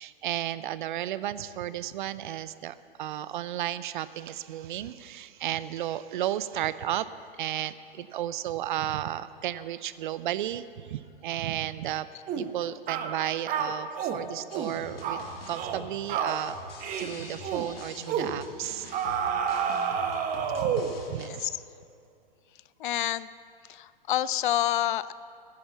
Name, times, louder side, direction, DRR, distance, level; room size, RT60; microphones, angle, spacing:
voice 1, 0.0-7.1 7.4-12.1 12.3-15.2 15.5-16.6 17.0-18.9 20.5-21.5, right 12 dB, 55° right, 15 dB, 0.6 m, -33 dB
sound 1, 12.3-12.5 12.9-13.1 13.5-14.2 14.5-14.7 15.0-15.2 15.5-15.8 16.1-16.4 16.8-17.1 17.4-17.7 18.1-18.3 18.9-21.0, right 7 dB, 30° right, 1.2 m, -29 dB
sound 2, 14.5-21.3, left 2 dB, 80° left, 2.2 m, -45 dB
voice 2, 21.2-21.6 22.8-23.3 23.7-25.1, left 13 dB, 60° left, 17 dB, 0.5 m, -28 dB
14.0 x 10.5 x 7.2 m, 2.4 s
hypercardioid pair, 110°, 29 cm